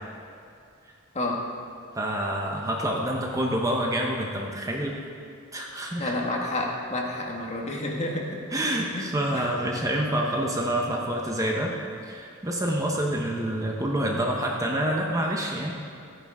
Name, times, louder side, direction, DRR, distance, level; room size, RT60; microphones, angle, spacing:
voice 1, 1.9-5.0 5.5-6.1 8.5-11.7 12.0-15.7, right 1 dB, 15° right, -1 dB, 1.0 m, -27 dB
voice 2, 6.0-8.3 8.9-9.5, left 1 dB, 30° left, -1 dB, 1.7 m, -30 dB
14.0 x 9.5 x 4.9 m, 2.6 s
head